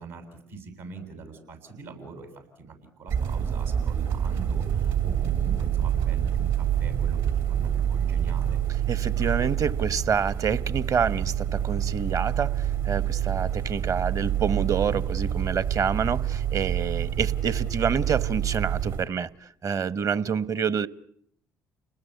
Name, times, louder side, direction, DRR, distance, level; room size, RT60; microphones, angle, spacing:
voice 1, 0.0-7.2 7.4-8.6, right 4 dB, 85° right, 7.7 m, -42 dB
sound 1, 3.1-19.1, right 10 dB, 70° right, 3.2 m, -27 dB
voice 2, 8.9-20.9, right 7 dB, 45° right, 1.1 m, -27 dB
30.0 x 20.0 x 8.2 m
hypercardioid pair, 60°, 8 cm